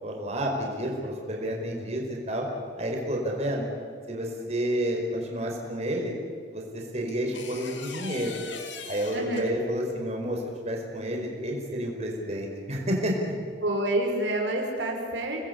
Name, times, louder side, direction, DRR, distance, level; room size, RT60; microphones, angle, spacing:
voice 1, 0.0-2.5 2.8-3.7 4.1-6.1 6.5-8.4 8.9-13.2, equal, 40° right, 0 dB, 5.0 m, -30 dB
sound 1, 7.1-9.8 11.5-11.8, left 5 dB, 90° left, 2.8 m, -41 dB
voice 2, 9.1-9.4 13.6-15.4, right 1 dB, 85° right, 1 dB, 5.1 m, -28 dB
29.0 x 20.5 x 8.5 m, 2.1 s
head